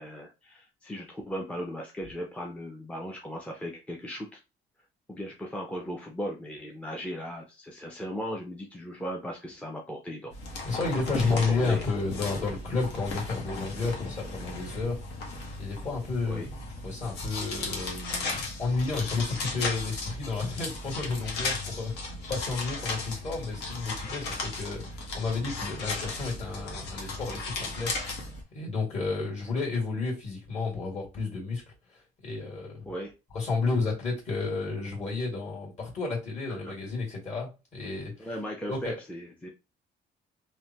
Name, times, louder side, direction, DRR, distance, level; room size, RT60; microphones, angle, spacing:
voice 1, 0.0-4.4 5.1-10.3 10.6-10.8 11.2-11.8 16.2-16.5 32.9-33.1 36.5-36.7 38.2-39.5, equal, 5° left, 0.5 m, -37 dB
sound 1, 10.3-28.4, left 3 dB, 85° left, 0.9 m, -36 dB
voice 2, 10.6-15.0 15.6-16.5 16.8-27.9 28.5-31.6 32.2-32.9 33.3-38.3 38.7-38.9, left 3 dB, 40° left, 1.9 m, -31 dB
3.2 x 2.1 x 2.8 m
cardioid pair, 110°, 17 cm